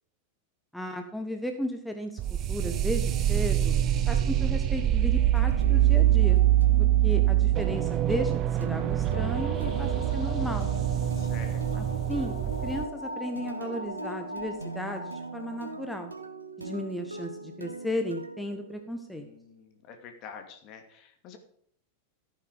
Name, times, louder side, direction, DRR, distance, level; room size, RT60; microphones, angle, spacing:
voice 1, 0.7-3.8 4.1-6.4 6.8-10.7 11.7-12.4 12.6-16.1 16.6-19.3, left 1 dB, 5° left, 5 dB, 1.2 m, -35 dB
sound 1, 2.2-12.8, right 13 dB, 35° right, 0.8 m, -24 dB
sound 2, 2.6-19.3, right 3 dB, 80° right, 1.2 m, -42 dB
sound 3, 9.1-16.1, left 1 dB, 80° left, 3.8 m, -40 dB
voice 2, 11.1-11.9 19.1-21.4, left 6 dB, 40° left, 6 dB, 2.5 m, -47 dB
15.0 x 9.1 x 5.1 m, 0.65 s
figure-of-eight pair, 90°, 0 cm